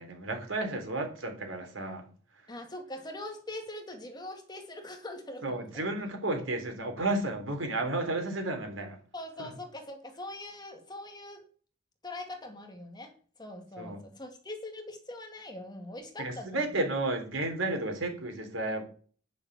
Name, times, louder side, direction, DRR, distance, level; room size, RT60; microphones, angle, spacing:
voice 1, 0.0-2.1 5.4-9.0 9.4-9.5 13.8-14.0 16.2-18.8, right 2 dB, 85° right, 5 dB, 3.6 m, -32 dB
voice 2, 2.5-5.9 9.1-11.4 12.0-13.1 13.4-16.7, left 1 dB, 20° left, 4 dB, 2.3 m, -42 dB
10.0 x 6.8 x 7.5 m, 0.42 s
head